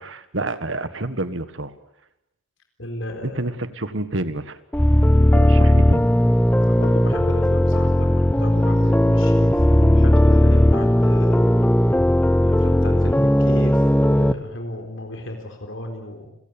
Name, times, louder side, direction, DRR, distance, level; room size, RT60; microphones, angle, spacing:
voice 1, 0.0-1.7 3.2-4.6 5.3-6.1, right 2 dB, 70° right, 13 dB, 1.6 m, -28 dB
voice 2, 2.8-3.5 6.6-11.5 12.4-16.3, left 1 dB, 70° left, 4 dB, 4.1 m, -34 dB
sound 1, 4.7-14.3, left 1 dB, 10° left, 0.9 m, -17 dB
30.0 x 16.5 x 8.8 m, 0.82 s
head